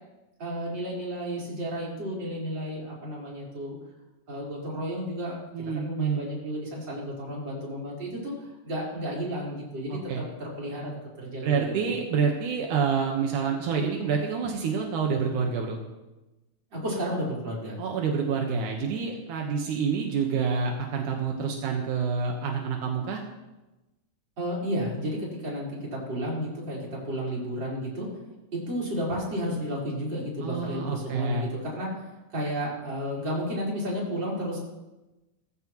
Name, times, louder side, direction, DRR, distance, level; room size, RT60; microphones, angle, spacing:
voice 1, 0.4-3.8 4.3-5.4 5.8-10.9 11.2-11.9 16.7-17.8 24.4-28.1 28.5-31.9 32.3-34.6, equal, 35° right, -5 dB, 4.9 m, -32 dB
voice 2, 5.5-6.2 9.9-10.2 11.4-15.8 17.8-23.2 30.4-31.5, right 5 dB, 80° right, 1 dB, 2.8 m, -28 dB
19.5 x 14.5 x 3.1 m, 1.0 s
omnidirectional pair, 3.5 m